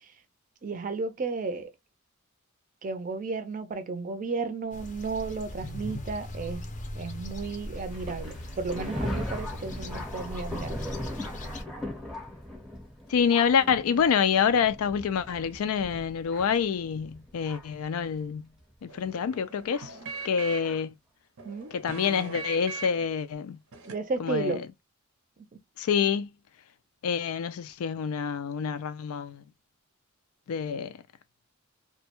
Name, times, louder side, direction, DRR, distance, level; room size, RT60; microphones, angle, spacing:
voice 1, 0.6-1.7 2.8-6.7 6.9-10.8 21.4-21.7 23.9-24.6, right 4 dB, 40° right, 0.4 m, -33 dB
sound 1, 4.7-11.6, left 1 dB, 35° left, 0.5 m, -39 dB
Thunder, 7.9-17.8 18.6-18.7 19.7-19.9 20.6-20.8, left 1 dB, ahead, 0.7 m, -38 dB
voice 2, 13.1-18.5 18.8-19.9 20.2-20.9 21.7-23.6 24.2-24.6 25.8-26.3 27.0-29.4 30.5-31.0, left 7 dB, 90° left, 0.4 m, -27 dB
sound 2, 18.9-20.8 21.4-23.1 23.7-23.9, right 3 dB, 85° right, 0.6 m, -40 dB
2.2 x 2.1 x 2.8 m
head